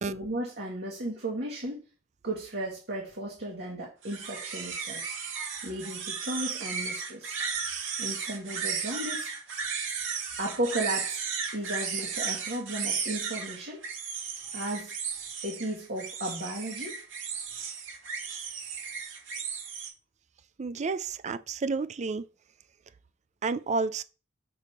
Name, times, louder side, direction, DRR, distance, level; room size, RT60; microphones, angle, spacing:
voice 1, 0.1-1.8 2.2-5.0 5.6-7.4 8.0-9.3 10.4-11.2 11.5-13.8 14.5-14.9 15.4-17.0, right 1 dB, 55° right, 1.6 m, -35 dB
sound 1, 4.0-19.9, right 6 dB, 75° right, 2.2 m, -35 dB
voice 2, 20.6-22.2 23.4-24.0, right 4 dB, 35° right, 0.4 m, -30 dB
6.1 x 3.5 x 5.6 m
head